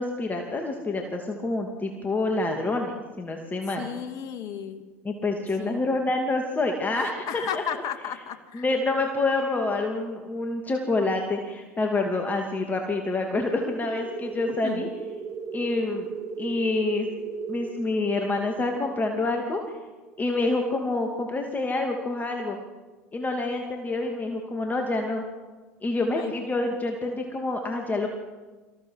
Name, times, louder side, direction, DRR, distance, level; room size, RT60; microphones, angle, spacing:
voice 1, 0.0-3.9 5.0-7.6 8.5-14.9 15.5-16.1 16.4-17.1 17.5-19.8 20.2-22.6 23.1-25.2 25.8-28.1, left 2 dB, 20° left, 3 dB, 2.7 m, -27 dB
voice 2, 3.8-4.8 5.6-6.0 7.0-8.6 14.6-14.9 26.1-26.3, left 8 dB, 50° left, 9 dB, 2.4 m, -34 dB
sound 1, 13.3-21.7, right 5 dB, 45° right, 3.5 m, -38 dB
26.0 x 15.5 x 6.5 m, 1.3 s
figure-of-eight pair, 75°, 8 cm